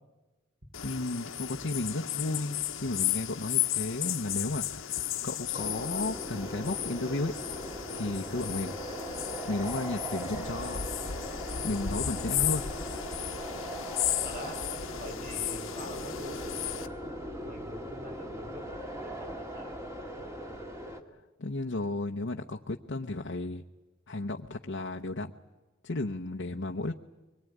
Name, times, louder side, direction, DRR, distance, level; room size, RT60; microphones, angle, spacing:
sound 1, 0.7-16.9, left 11 dB, 75° left, 1.2 m, -34 dB
voice 1, 0.8-7.6 7.9-9.1 9.5-10.9 11.6-12.6 21.4-23.6 24.1-25.3 25.8-26.9, left 2 dB, 60° left, 2 dB, 0.9 m, -34 dB
sound 2, 5.5-21.0, equal, 15° right, 2.2 m, -40 dB
voice 2, 14.2-14.6 14.9-16.4 17.4-19.8, equal, 45° right, 4 dB, 5.0 m, -45 dB
24.0 x 21.0 x 9.3 m, 1.2 s
head